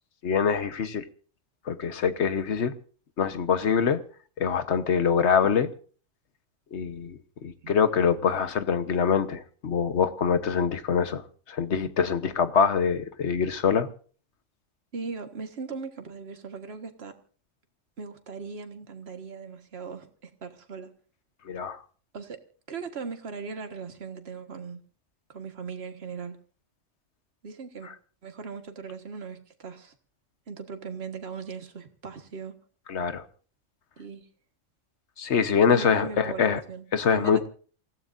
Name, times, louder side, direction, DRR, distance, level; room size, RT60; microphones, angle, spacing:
voice 1, 0.2-1.0 1.7-2.7 3.2-4.0 4.4-5.7 6.7-11.2 11.5-13.9 21.5-21.8 32.9-33.2 35.2-36.6 36.9-37.5, left 6 dB, 65° left, 1.3 m, -24 dB
voice 2, 14.9-17.1 18.0-20.9 22.1-22.4 22.7-24.8 25.3-26.4 27.4-27.9 28.2-29.9 30.5-32.5 34.0-34.3 35.7-36.8 37.1-37.5, right 5 dB, 55° right, 1.8 m, -38 dB
28.0 x 15.5 x 2.6 m
omnidirectional pair, 1.3 m